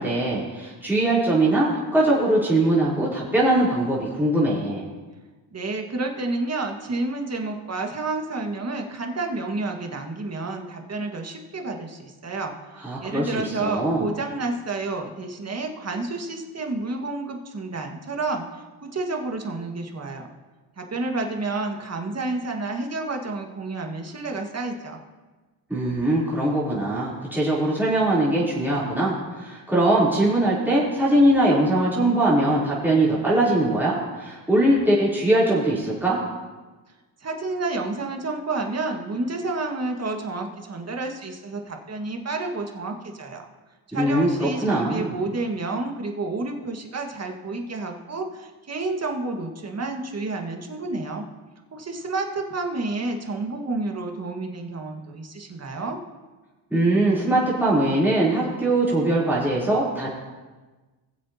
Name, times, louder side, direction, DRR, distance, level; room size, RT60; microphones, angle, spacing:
voice 1, 0.0-4.9 12.8-14.0 25.7-36.2 43.9-45.1 56.7-60.1, right 1 dB, 5° right, -8 dB, 3.6 m, -21 dB
voice 2, 5.5-20.3 20.8-25.0 37.2-43.5 43.9-51.3 51.7-56.0, right 3 dB, 30° right, 3 dB, 1.8 m, -30 dB
20.0 x 7.6 x 2.9 m, 1.3 s
supercardioid pair, 75°, 49 cm